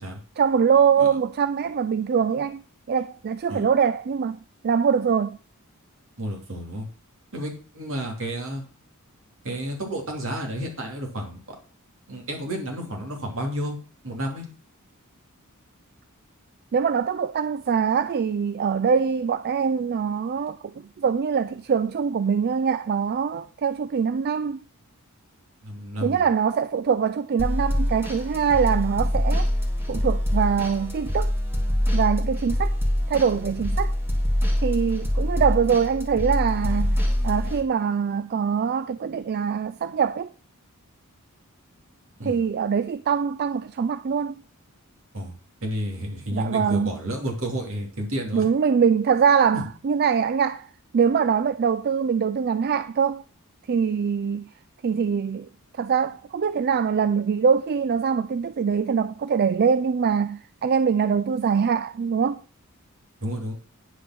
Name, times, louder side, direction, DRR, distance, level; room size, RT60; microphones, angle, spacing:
voice 1, 0.4-2.6 2.9-4.4 4.6-5.4 16.7-24.6 26.0-29.5 29.9-31.3 31.9-32.8 33.1-33.9 34.6-40.3 42.2-44.4 46.3-46.9 48.3-53.2 53.7-54.5 54.8-55.5 55.8-62.4, right 6 dB, 45° right, 0.4 m, -23 dB
voice 2, 6.2-6.9 7.3-8.6 9.4-11.6 12.1-13.8 14.0-14.5 25.6-26.2 42.2-42.4 45.1-45.3 45.6-48.5 49.5-49.6 63.2-63.5, equal, 65° right, 3.0 m, -31 dB
sound 1, 27.4-37.6, equal, 10° right, 2.3 m, -25 dB
10.0 x 5.2 x 6.1 m
head